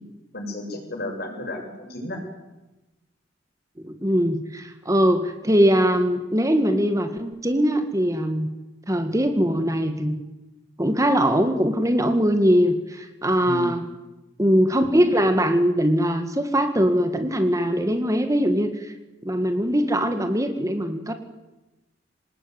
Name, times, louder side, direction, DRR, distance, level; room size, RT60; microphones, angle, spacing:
voice 1, 0.3-2.2 13.4-13.8, left 1 dB, 55° left, 3 dB, 6.9 m, -32 dB
voice 2, 3.8-8.5 8.9-10.1 10.8-13.8 14.4-18.9 19.2-21.1, equal, 15° right, 7 dB, 2.0 m, -21 dB
26.5 x 19.0 x 9.5 m, 1.1 s
head